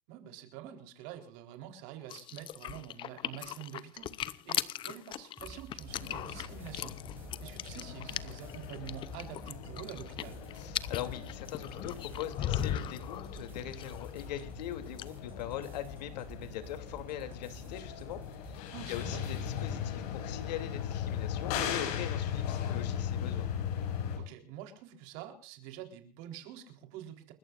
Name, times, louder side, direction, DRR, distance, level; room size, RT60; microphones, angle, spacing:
voice 1, 0.1-7.0 7.4-10.4 18.7-19.2 24.2-27.3, right 10 dB, 50° right, 6 dB, 4.0 m, -47 dB
sound 1, 2.1-14.6 14.9-15.0, left 11 dB, 25° left, 0.7 m, -38 dB
sound 2, 5.4-19.8, right 2 dB, 10° right, 4.6 m, -51 dB
sound 3, 5.9-24.2, left 8 dB, 65° left, 6.5 m, -39 dB
voice 2, 10.6-23.5, left 11 dB, 85° left, 8 dB, 3.1 m, -41 dB
29.5 x 14.5 x 2.6 m, 0.37 s
supercardioid pair, 165°, 21 cm